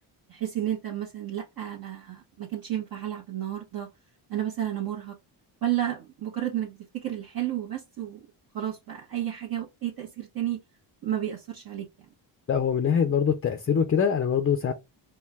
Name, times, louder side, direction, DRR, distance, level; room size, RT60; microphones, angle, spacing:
voice 1, 0.3-3.9 4.3-5.2 5.6-8.2 8.5-10.6 11.0-11.9, right 12 dB, 50° right, 1.2 m, -32 dB
voice 2, 12.5-14.7, left 7 dB, 30° left, 0.5 m, -23 dB
4.5 x 2.2 x 3.5 m
cardioid pair, 90°, 47 cm